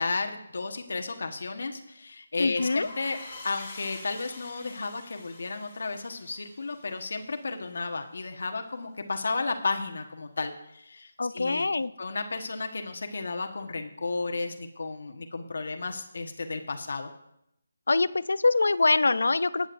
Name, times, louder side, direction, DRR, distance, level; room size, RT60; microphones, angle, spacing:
voice 1, 0.0-3.2 3.4-11.7 12.0-17.1, left 3 dB, 65° left, 5 dB, 1.3 m, -33 dB
voice 2, 2.4-2.9 11.2-11.9 17.9-19.7, left 3 dB, 85° left, 17 dB, 0.5 m, -24 dB
sound 1, 2.5-7.9, left 2 dB, 25° left, 3.8 m, -46 dB
20.0 x 9.8 x 2.6 m, 0.80 s
hypercardioid pair, 175°, 0 cm